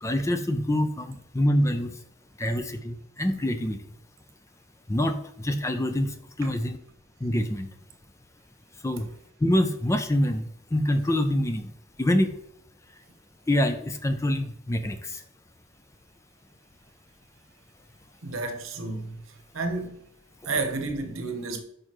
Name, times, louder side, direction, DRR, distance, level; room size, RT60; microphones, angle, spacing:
voice 1, 0.0-1.9 2.4-3.8 4.9-6.8 7.2-7.7 8.8-9.1 9.4-11.7 12.0-12.3 13.5-15.2, left 1 dB, 15° left, 0.4 m, -25 dB
voice 2, 18.2-19.2 19.5-20.0 20.4-21.6, right 3 dB, 90° right, 1.0 m, -30 dB
6.4 x 5.0 x 3.0 m
head